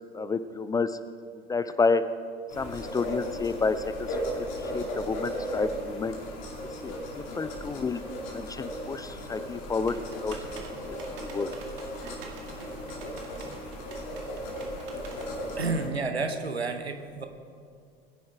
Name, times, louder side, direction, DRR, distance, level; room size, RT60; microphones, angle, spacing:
voice 1, 0.1-1.0 1.5-2.0 2.5-6.2 6.8-8.0 8.3-10.0 10.2-10.4 10.9-11.5, left 4 dB, 10° left, 12 dB, 0.3 m, -30 dB
sound 1, 2.5-15.9, equal, 55° left, 2.5 m, -36 dB
sound 2, 9.9-15.3, right 4 dB, 60° right, 2.0 m, -46 dB
voice 2, 15.6-17.3, right 4 dB, 85° right, 7 dB, 1.0 m, -31 dB
22.0 x 10.0 x 3.6 m, 2.3 s
figure-of-eight pair, 75°, 31 cm